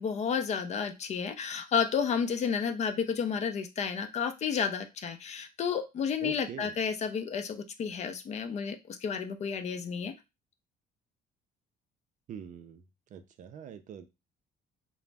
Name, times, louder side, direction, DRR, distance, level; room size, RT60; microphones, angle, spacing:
voice 1, 0.0-10.1, left 6 dB, 40° left, 8 dB, 0.4 m, -31 dB
voice 2, 6.2-6.8 12.3-12.9 13.1-14.0, right 9 dB, 50° right, 10 dB, 0.4 m, -43 dB
2.4 x 2.0 x 3.2 m, 0.25 s
cardioid pair, 110°, 17 cm